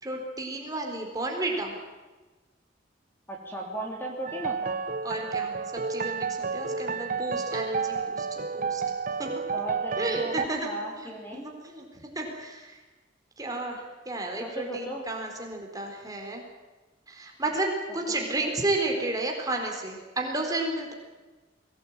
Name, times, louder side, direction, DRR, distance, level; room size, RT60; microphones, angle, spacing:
voice 1, 0.0-1.8 5.0-8.8 9.2-9.3 10.0-12.8 13.4-16.4 17.1-17.7 17.9-20.9, right 2 dB, 20° right, 1 dB, 4.3 m, -32 dB
voice 2, 3.3-4.8 9.5-11.5 14.4-15.0 18.4-18.5, right 1 dB, 10° left, 0 dB, 3.4 m, -36 dB
sound 1, 4.3-10.5, right 5 dB, 45° right, 1.0 m, -31 dB
23.0 x 17.5 x 9.1 m, 1.2 s
head